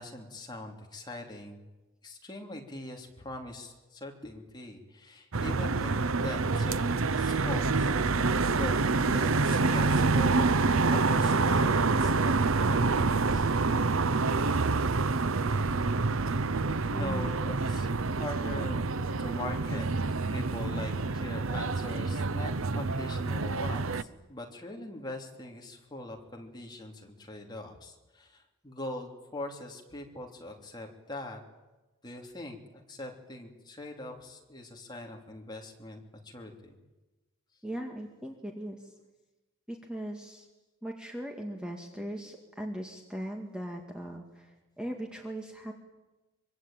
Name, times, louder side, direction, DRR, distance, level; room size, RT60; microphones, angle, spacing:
voice 1, 0.0-1.6 2.0-13.5 16.9-18.9 19.2-19.9 20.3-31.4 32.0-36.8, left 1 dB, 20° left, 1 dB, 3.1 m, -42 dB
sound 1, 5.3-24.0, right 3 dB, 75° right, 0.8 m, -27 dB
voice 2, 16.9-17.4 37.6-38.9 39.7-40.5 40.8-45.7, equal, 5° right, 2 dB, 2.1 m, -39 dB
24.5 x 24.0 x 9.1 m, 1.1 s
head